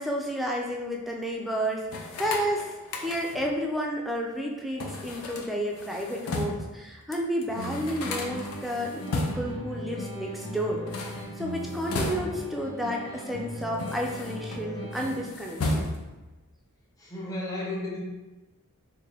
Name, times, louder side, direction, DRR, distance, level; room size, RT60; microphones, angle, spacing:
voice 1, 0.0-2.7 3.0-10.8 11.4-15.9, equal, ahead, -1 dB, 0.4 m, -31 dB
sound 1, 1.9-3.5 4.8-6.7 7.1-7.2 7.4-9.6 10.7-12.6 13.3-14.6 14.9-16.2, left 2 dB, 75° left, 0.5 m, -34 dB
sound 2, 7.5-15.5, equal, 50° left, 1.2 m, -38 dB
voice 2, 17.0-18.0, left 2 dB, 15° left, -4 dB, 0.8 m, -33 dB
3.6 x 2.7 x 3.3 m, 1.1 s
head